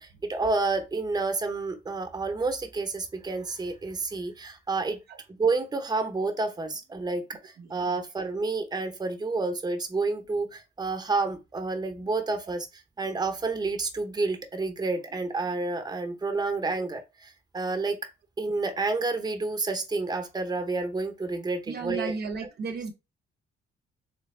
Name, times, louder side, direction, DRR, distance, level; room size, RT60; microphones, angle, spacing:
voice 1, 0.0-5.0 5.4-18.0 18.4-22.1, right 3 dB, 20° right, 0.8 m, -29 dB
voice 2, 7.6-8.0 16.7-16.9 21.6-22.9, right 5 dB, 55° right, 0.7 m, -35 dB
3.3 x 3.3 x 3.3 m
cardioid pair, 90°, 20 cm